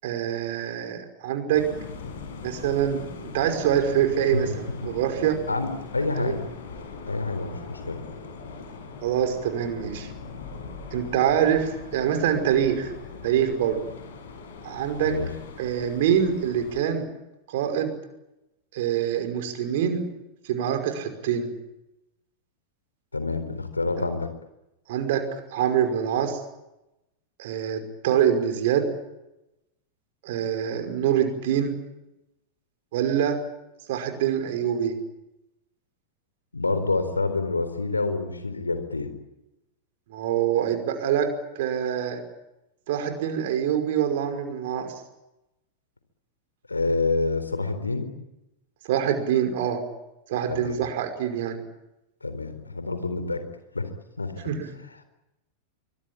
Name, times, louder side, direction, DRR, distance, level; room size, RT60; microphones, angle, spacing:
voice 1, 0.0-1.7 2.4-3.0 3.3-5.4 6.2-6.3 9.0-10.1 10.9-12.9 13.2-13.8 14.6-15.1 15.6-17.1 17.5-17.9 18.7-20.1 20.5-21.5 24.9-25.2 25.5-26.4 27.4-28.9 30.2-31.8 32.9-33.4 33.9-35.0 40.1-41.3 41.6-42.2 42.9-44.9 48.9-49.8 50.3-51.6 54.4-54.7, right 9 dB, 55° right, 6 dB, 5.5 m, -25 dB
sound 1, 1.5-16.8, left 4 dB, 60° left, 6.6 m, -40 dB
voice 2, 5.5-6.4 7.1-8.0 15.0-15.3 23.1-24.3 36.5-39.1 46.7-48.1 50.5-50.8 52.2-53.4 53.7-53.9 54.2-54.3, left 3 dB, 80° left, 10 dB, 4.2 m, -27 dB
24.5 x 24.5 x 8.8 m, 0.93 s
figure-of-eight pair, 90°, 0 cm